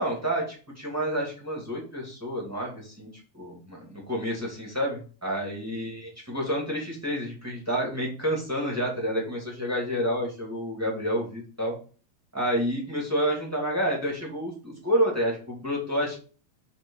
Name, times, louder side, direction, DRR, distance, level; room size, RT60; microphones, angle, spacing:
voice 1, 0.0-3.1 3.3-11.7 12.3-16.1, equal, 5° right, -2 dB, 1.4 m, -29 dB
6.8 x 3.9 x 5.5 m, 0.38 s
omnidirectional pair, 4.6 m